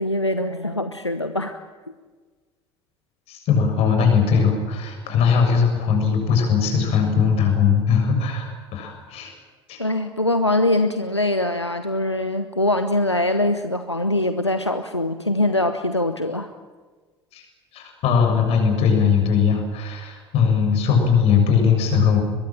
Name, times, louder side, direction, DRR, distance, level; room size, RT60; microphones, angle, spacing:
voice 1, 0.0-1.6 9.8-16.5, left 1 dB, 90° left, 9 dB, 1.0 m, -23 dB
voice 2, 3.3-9.3 9.7-9.8 17.3-17.4 17.7-22.2, left 6 dB, 45° left, 4 dB, 7.3 m, -19 dB
22.5 x 21.5 x 8.9 m, 1.4 s
figure-of-eight pair, 70°, 14 cm